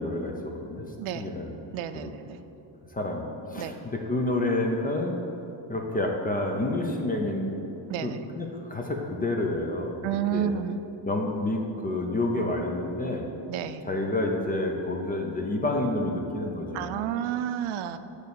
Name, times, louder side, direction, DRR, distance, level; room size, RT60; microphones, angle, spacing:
voice 1, 0.0-0.9 1.1-1.5 2.0-2.1 2.9-5.2 5.7-7.5 8.0-9.9 10.3-10.5 11.1-13.3 13.8-17.1, left 2 dB, 20° left, 1 dB, 0.4 m, -29 dB
voice 2, 1.0-1.3 1.7-2.4 3.6-3.8 7.9-8.2 10.0-10.8 13.5-13.8 16.7-18.0, right 10 dB, 80° right, 11 dB, 0.5 m, -30 dB
9.2 x 3.2 x 6.6 m, 2.9 s
cardioid pair, 165°, 48 cm